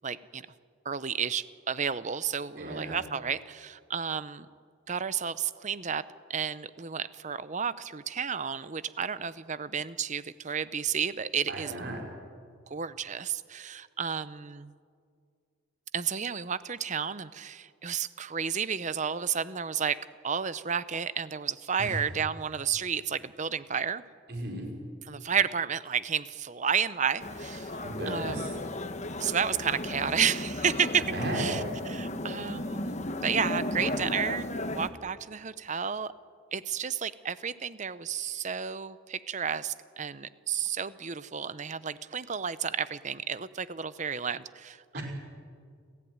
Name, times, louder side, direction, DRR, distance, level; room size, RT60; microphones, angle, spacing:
voice 1, 0.0-0.4 0.8-4.5 4.9-6.0 6.3-11.8 12.7-14.7 15.9-20.0 20.2-24.0 25.1-27.8 28.1-28.5 29.2-31.0 31.3-31.6 31.9-36.1 36.5-45.0, right 7 dB, 35° right, 15 dB, 0.7 m, -31 dB
voice 2, 2.6-3.0 11.5-12.0 21.8-22.0 24.3-24.7 27.8-28.5 30.9-31.6 44.9-45.0, right 1 dB, 50° right, 0 dB, 5.0 m, -35 dB
sound 1, 27.2-34.9, left 1 dB, 35° left, 1.2 m, -35 dB
29.0 x 14.5 x 9.5 m, 2.2 s
head